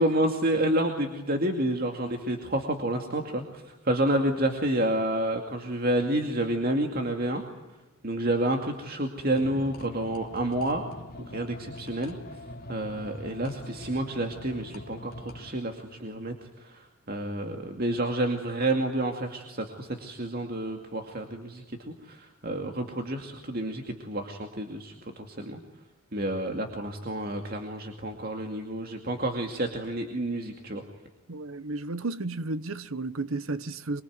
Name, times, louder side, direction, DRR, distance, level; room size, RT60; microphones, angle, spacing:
voice 1, 0.0-7.4 8.0-10.8 11.3-12.2 12.7-16.3 16.6-25.6 26.1-30.8, right 1 dB, 45° right, 2.4 m, -29 dB
sound 1, 9.3-15.5, left 1 dB, 40° left, 2.8 m, -43 dB
voice 2, 31.3-34.0, right 2 dB, 75° right, 1.0 m, -33 dB
25.0 x 23.5 x 9.5 m
head